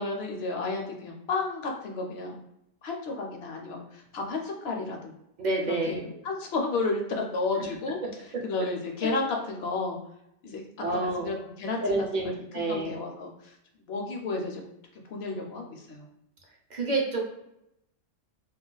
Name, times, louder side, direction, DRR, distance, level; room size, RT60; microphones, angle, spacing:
voice 1, 0.0-2.4 2.8-5.1 5.7-8.0 8.4-10.0 10.4-10.6 10.9-11.8 12.5-13.3 13.9-14.7 15.1-16.1, left 3 dB, 65° left, 2 dB, 0.7 m, -32 dB
voice 2, 5.4-6.0 8.6-8.7 10.8-11.3 11.8-12.9 16.7-17.2, right 2 dB, 50° right, 0 dB, 0.6 m, -28 dB
2.3 x 2.2 x 3.7 m, 0.81 s
omnidirectional pair, 1.3 m